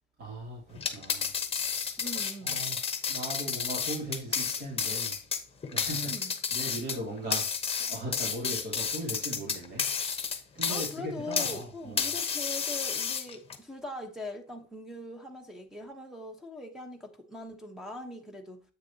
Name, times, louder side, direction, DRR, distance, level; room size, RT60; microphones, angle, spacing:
voice 1, 0.2-2.0 2.4-2.8 3.1-5.2 5.7-7.5 7.8-12.0, right 1 dB, 50° right, 2.9 m, -39 dB
sound 1, 0.7-11.6 12.0-13.6, left 6 dB, 30° left, 1.0 m, -31 dB
voice 2, 2.0-2.6 5.9-6.3 10.7-18.6, left 1 dB, ahead, 1.1 m, -41 dB
8.1 x 6.6 x 2.9 m
cardioid pair, 135°, 20 cm